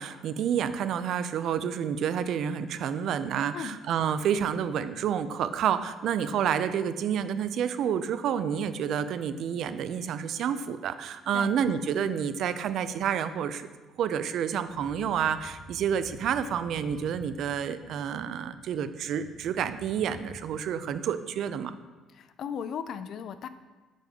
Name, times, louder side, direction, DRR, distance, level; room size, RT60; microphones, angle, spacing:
voice 1, 0.0-13.7 14.0-21.7, right 8 dB, 55° right, 12 dB, 0.4 m, -29 dB
sound 1, 14.7-20.4, equal, 20° left, 1.4 m, -50 dB
voice 2, 22.1-23.5, left 7 dB, 50° left, 12 dB, 0.4 m, -36 dB
7.4 x 3.6 x 5.3 m, 1.2 s
cardioid pair, 150°, 0 cm